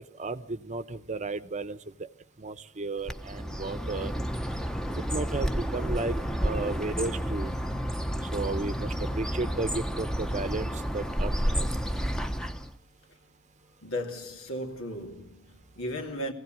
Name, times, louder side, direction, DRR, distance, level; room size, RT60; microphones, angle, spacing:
voice 1, 0.0-2.1 2.4-4.1 5.0-6.2 6.4-7.5 8.3-11.7, right 3 dB, 35° right, 0.8 m, -34 dB
Bird, 3.0-12.8, equal, 5° left, 0.8 m, -31 dB
voice 2, 13.8-16.3, left 1 dB, 80° left, 3.0 m, -36 dB
23.5 x 16.0 x 9.1 m
head